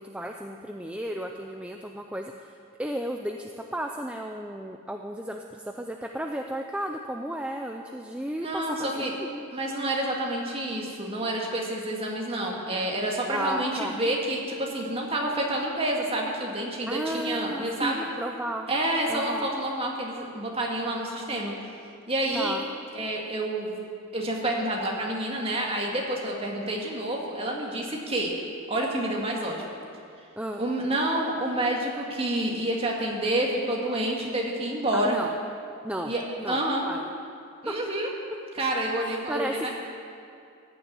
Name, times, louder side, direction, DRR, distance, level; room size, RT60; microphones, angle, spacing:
voice 1, 0.0-9.5 13.3-13.9 16.9-18.7 19.1-19.5 22.3-22.6 30.4-30.6 34.9-35.3 35.8-36.1 36.4-36.6 36.8-37.0 37.7-37.8 39.0-39.8, right 1 dB, 5° right, 3 dB, 0.4 m, -34 dB
voice 2, 8.4-9.1 9.5-18.0 18.7-21.5 22.1-22.6 22.9-23.8 24.1-28.3 28.7-29.7 30.6-35.2 36.0-36.2 36.5-36.9 37.6-38.1 38.5-39.8, right 1 dB, 25° right, -1 dB, 2.0 m, -28 dB
14.5 x 7.1 x 9.6 m, 2.4 s
head